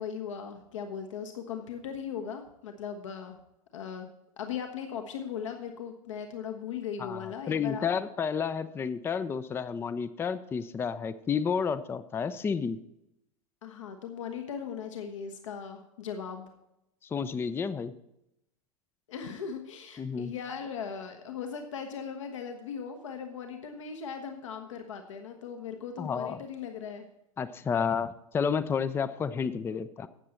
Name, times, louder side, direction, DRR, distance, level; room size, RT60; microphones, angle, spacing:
voice 1, 0.0-3.4 3.7-4.1 4.4-7.9 13.6-16.5 19.1-27.1, left 7 dB, 60° left, 5 dB, 1.2 m, -38 dB
voice 2, 7.0-12.8 17.1-17.9 20.0-20.3 26.0-26.4 27.4-30.1, left 6 dB, 15° left, 14 dB, 0.5 m, -31 dB
13.0 x 8.5 x 4.3 m, 0.84 s
figure-of-eight pair, 90°, 18 cm